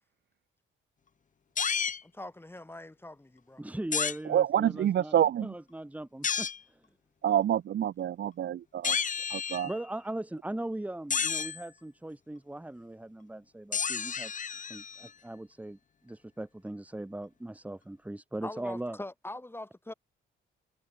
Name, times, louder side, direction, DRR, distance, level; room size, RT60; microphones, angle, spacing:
sound 1, 1.6-2.0 3.9-4.2 6.2-6.6 8.8-9.8 11.1-11.6 13.7-15.1, left 6 dB, 40° left, 1.9 m, -31 dB
voice 1, 2.0-3.6 18.4-19.9, left 1 dB, 10° left, 4.0 m, -43 dB
voice 2, 3.6-5.2 5.4-6.5 9.6-14.3 14.7-15.8 16.0-19.0, right 1 dB, 5° right, 2.0 m, -39 dB
voice 3, 4.3-5.5 7.2-9.0 9.3-9.7, right 10 dB, 60° right, 1.4 m, -27 dB
cardioid pair, 90°, 20 cm